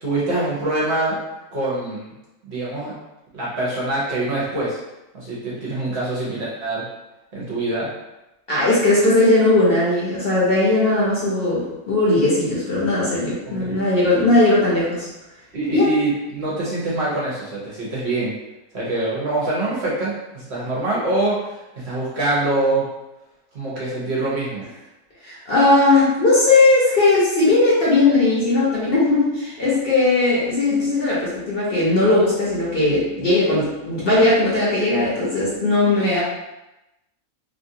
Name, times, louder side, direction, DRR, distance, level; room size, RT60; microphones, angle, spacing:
voice 1, 0.0-1.2 1.5-2.1 2.5-2.9 3.3-4.8 5.1-6.8 7.3-7.9 13.4-13.8 15.5-18.3 18.7-21.5 21.8-22.9 23.5-24.7, right 2 dB, 55° right, -6 dB, 1.0 m, -24 dB
voice 2, 8.5-15.1 15.7-15.9 25.2-36.2, left 2 dB, 50° left, -7 dB, 0.9 m, -18 dB
2.9 x 2.4 x 2.7 m, 0.95 s
omnidirectional pair, 1.5 m